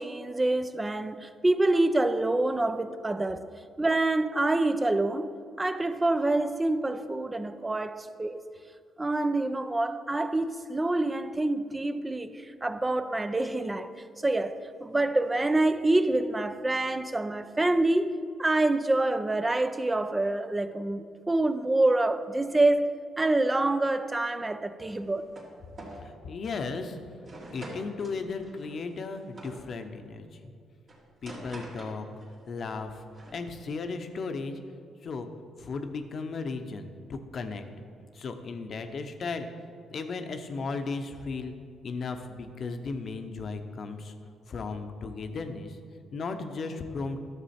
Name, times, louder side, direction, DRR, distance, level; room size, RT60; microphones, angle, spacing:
voice 1, 0.0-3.5 3.8-8.4 9.0-13.9 14.2-18.1 18.4-22.9 23.2-25.3, right 2 dB, 20° right, 0.4 m, -26 dB
sound 1, 24.9-25.5 25.8-26.1 26.6-26.8 27.2-29.6 30.9-32.4 32.6-33.4, right 1 dB, 45° right, 2.1 m, -46 dB
voice 2, 26.2-27.0 27.5-30.5 31.2-32.0 32.5-33.0 33.3-34.6 35.0-35.3 35.6-37.6 38.1-39.5 39.9-41.5 41.8-44.1 44.5-45.8 46.1-47.2, left 4 dB, 50° left, 0.8 m, -35 dB
11.5 x 6.8 x 4.3 m
cardioid pair, 90°, 0 cm